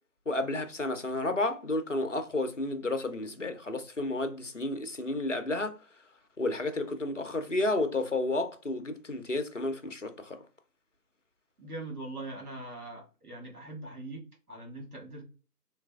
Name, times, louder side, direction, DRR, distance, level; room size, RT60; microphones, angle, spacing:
voice 1, 0.3-5.8 6.4-10.4, left 2 dB, 50° left, 0.6 m, -31 dB
voice 2, 11.6-14.2 14.5-15.2, right 2 dB, 65° right, 1.6 m, -41 dB
3.2 x 3.2 x 2.3 m
figure-of-eight pair, 165°, 48 cm